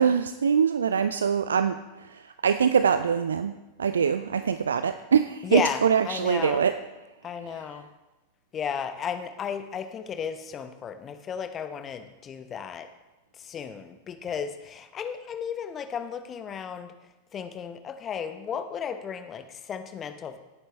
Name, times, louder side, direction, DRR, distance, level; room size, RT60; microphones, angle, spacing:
voice 1, 0.0-6.8 7.5-7.6, right 7 dB, 70° right, 11 dB, 0.4 m, -24 dB
voice 2, 5.4-6.6 7.2-7.9 8.5-12.9 13.4-16.9 17.3-20.4, left 7 dB, 25° left, 9 dB, 1.0 m, -34 dB
17.0 x 9.2 x 3.3 m, 1.1 s
figure-of-eight pair, 90°, 0 cm